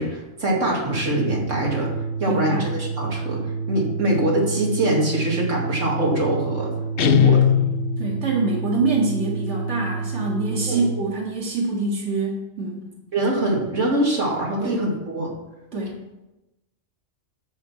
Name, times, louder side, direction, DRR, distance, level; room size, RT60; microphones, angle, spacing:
voice 1, 0.0-1.9 2.2-3.4 3.7-6.7 7.0-7.4 10.7-10.8 13.1-15.3, right 1 dB, 85° right, -2 dB, 2.8 m, -23 dB
Organ, 0.8-11.1, right 4 dB, 50° right, 1.5 m, -29 dB
voice 2, 2.3-2.7 8.0-12.9 14.6-14.8 15.7-16.0, right 3 dB, 65° right, -3 dB, 2.2 m, -25 dB
Guitar, 7.0-8.2, left 9 dB, 60° left, 0.7 m, -18 dB
11.5 x 7.9 x 4.4 m, 1.0 s
omnidirectional pair, 1.3 m